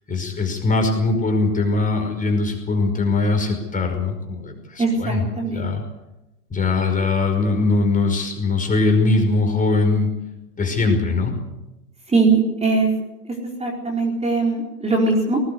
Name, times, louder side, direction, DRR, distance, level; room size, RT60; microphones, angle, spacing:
voice 1, 0.1-5.8 6.5-10.1 10.6-11.3, left 3 dB, 15° left, 4 dB, 5.3 m, -21 dB
voice 2, 4.8-5.7 12.1-12.9 13.6-15.4, right 3 dB, 15° right, 0 dB, 4.3 m, -20 dB
20.0 x 19.0 x 8.1 m, 0.97 s
hypercardioid pair, 105°, 47 cm